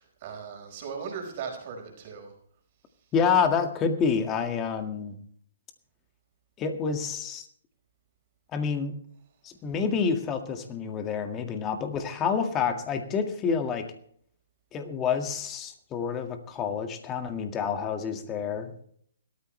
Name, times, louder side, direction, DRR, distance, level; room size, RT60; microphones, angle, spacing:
voice 1, 0.0-2.3 3.0-3.1, right 6 dB, 40° right, 2 dB, 4.7 m, -38 dB
voice 2, 3.1-5.2 6.6-7.5 8.5-8.9 9.4-13.9 14.7-18.8, left 6 dB, 20° left, 6 dB, 1.9 m, -28 dB
18.5 x 13.5 x 3.3 m, 0.62 s
hypercardioid pair, 150°, 0 cm